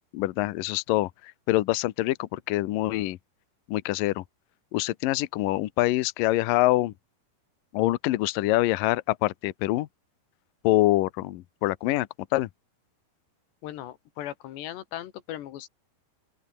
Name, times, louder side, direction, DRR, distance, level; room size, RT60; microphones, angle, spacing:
voice 1, 0.1-3.2 3.7-4.2 4.7-6.9 7.7-9.9 10.6-12.1 12.3-12.5, left 17 dB, 90° left, 1.9 m, -25 dB
voice 2, 13.6-15.7, left 12 dB, 70° left, 3.7 m, -38 dB
open air
omnidirectional pair, 5.4 m